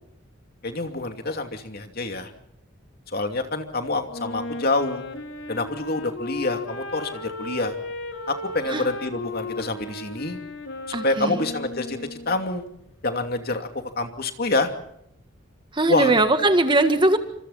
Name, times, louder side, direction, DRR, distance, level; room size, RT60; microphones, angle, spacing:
voice 1, 0.6-2.3 3.1-5.0 5.5-7.7 8.3-10.4 10.9-12.0 12.3-12.6 13.0-13.7 14.0-14.7 15.9-16.1, left 2 dB, 50° left, 5 dB, 2.7 m, -26 dB
Wind instrument woodwind instrument, 4.1-12.4, left 2 dB, 65° left, 3.7 m, -35 dB
voice 2, 10.9-11.4 15.7-17.2, right 2 dB, 25° right, 8 dB, 1.7 m, -20 dB
29.0 x 26.5 x 4.2 m, 0.76 s
head